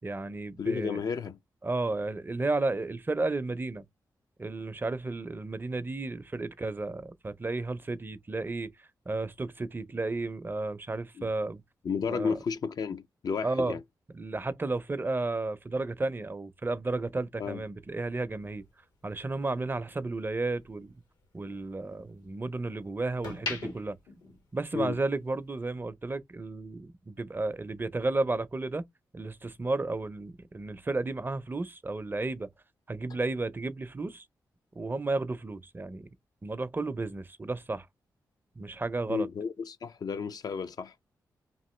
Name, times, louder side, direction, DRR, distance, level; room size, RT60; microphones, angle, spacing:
voice 1, 0.0-1.0 1.6-3.8 4.4-8.7 9.1-11.6 12.1-12.3 13.4-13.8 14.1-18.6 19.0-20.9 21.3-24.0 24.5-28.8 29.1-32.5 32.9-34.2 34.8-36.1 36.4-37.9 38.6-39.3, right 3 dB, 25° right, 0.5 m, -33 dB
voice 2, 0.6-1.4 11.2-11.3 11.8-13.8 17.4-17.6 24.7-25.0 39.1-40.9, left 5 dB, 60° left, 0.4 m, -32 dB
sound 1, 18.4-20.7 21.1-22.6 23.0-25.1 25.4-25.7, left 4 dB, 90° left, 1.7 m, -41 dB
2.9 x 2.5 x 3.1 m
cardioid pair, 60°, 8 cm